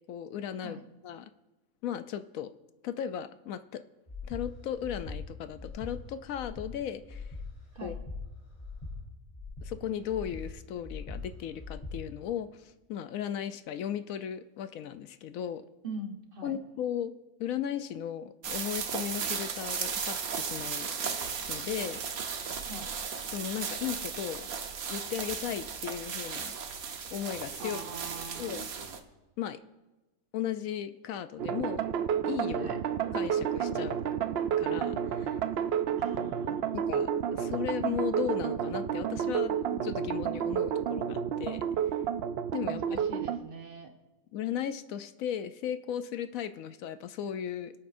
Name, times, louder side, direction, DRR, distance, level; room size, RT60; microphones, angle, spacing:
voice 1, 0.1-0.8 1.0-1.3 1.8-2.5 2.8-3.8 4.2-7.3 7.8-8.0 9.6-15.6 16.4-17.1 17.4-21.2 21.5-22.0 23.3-24.5 24.9-26.5 27.1-27.8 28.4-28.6 29.4-29.6 30.3-31.9 32.2-32.8 33.1-34.0 34.6-35.4 36.5-41.6 42.5-43.0 44.3-47.7, left 9 dB, 75° left, 11 dB, 1.0 m, -36 dB
Breathing, 4.1-4.4 4.8-5.2 5.6-5.9 6.3-6.7 7.1-7.4 7.8-8.2 8.6-8.9 9.3-9.7 10.1-10.4 10.8-11.2 11.6-11.9, left 3 dB, 25° left, 3.4 m, -41 dB
voice 2, 15.8-16.6 22.7-22.9 27.6-28.5 32.5-32.8 36.0-36.7 42.6-43.9, right 2 dB, 40° right, 3 dB, 1.3 m, -42 dB
sound 1, 18.4-29.0, right 6 dB, 80° right, 1.4 m, -36 dB
sound 2, 31.4-43.4, right 8 dB, 65° right, 0.6 m, -30 dB
25.5 x 8.5 x 2.6 m, 1.1 s
omnidirectional pair, 1.5 m